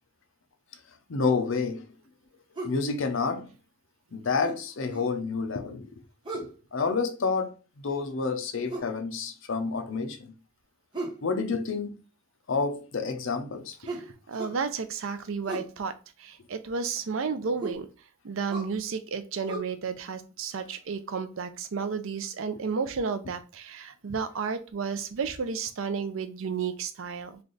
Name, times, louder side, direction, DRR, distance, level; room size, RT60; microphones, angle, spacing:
voice 1, 1.1-1.8 2.6-3.5 4.1-5.9 6.7-7.6 7.8-10.2 11.2-11.9 12.5-13.8, left 4 dB, 60° left, 0.5 m, -29 dB
sound 1, 2.6-2.8 4.4-5.1 6.2-6.6 8.7-9.0 10.9-11.2 13.9-14.6 15.4-15.7 17.6-17.8 18.5-18.7 19.5-19.6, right 2 dB, 20° right, 1.1 m, -36 dB
voice 2, 13.8-15.9 16.2-17.9 18.2-27.4, right 5 dB, 65° right, 0.5 m, -32 dB
3.3 x 2.4 x 3.9 m
head